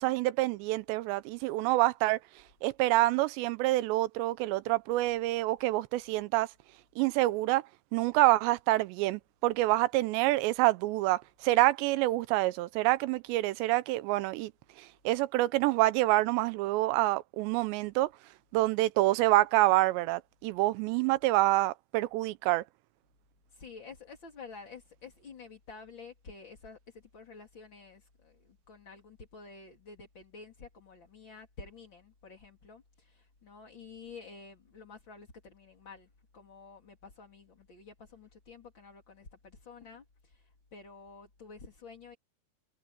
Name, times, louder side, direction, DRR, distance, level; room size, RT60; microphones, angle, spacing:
voice 1, 0.0-2.2 2.6-6.5 7.0-7.6 7.9-14.5 15.1-18.1 18.5-22.6, right 18 dB, 85° right, 2.9 m, -27 dB
voice 2, 23.5-36.1 36.3-42.2, left 4 dB, 30° left, 3.4 m, -50 dB
omnidirectional pair, 5.0 m